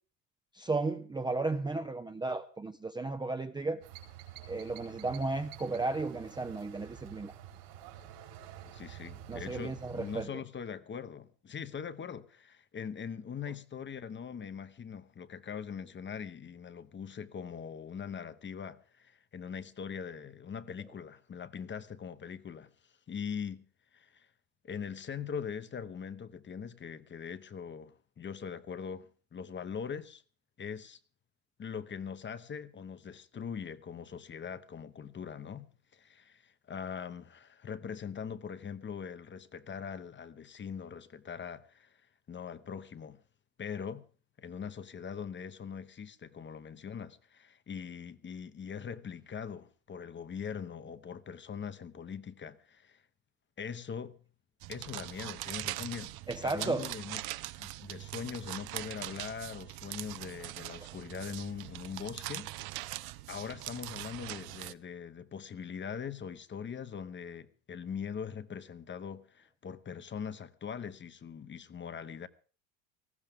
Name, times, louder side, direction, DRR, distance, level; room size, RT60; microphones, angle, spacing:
voice 1, 0.5-3.8 4.5-7.3 9.3-10.3 56.3-56.9 60.9-61.0, right 3 dB, 10° right, 0.6 m, -34 dB
sound 1, 3.8-10.3, right 10 dB, 75° right, 4.3 m, -49 dB
voice 2, 8.7-23.6 23.9-24.3 24.6-30.2 30.6-31.0 31.6-42.0 42.3-43.2 43.6-44.1 44.4-53.0 53.6-54.2 54.7-56.2 56.4-57.2 57.6-62.8 63.3-72.3, left 7 dB, 25° left, 1.0 m, -42 dB
sound 2, 54.6-64.7, right 18 dB, 50° right, 0.7 m, -42 dB
18.5 x 15.0 x 3.6 m
hypercardioid pair, 95°, 48 cm